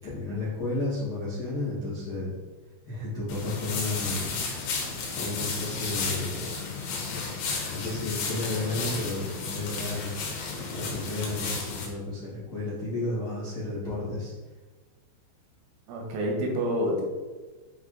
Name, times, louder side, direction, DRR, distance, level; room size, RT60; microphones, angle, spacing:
voice 1, 0.0-2.3 2.8-4.4 4.8-6.5 6.9-7.3 7.7-10.2 10.7-14.3, left 2 dB, 65° left, -10 dB, 0.9 m, -32 dB
sound 1, 3.3-11.9, left 4 dB, 85° left, 4.0 m, -33 dB
voice 2, 15.9-17.0, equal, 85° right, 0 dB, 3.8 m, -28 dB
8.9 x 3.2 x 3.9 m, 1.3 s
omnidirectional pair, 5.8 m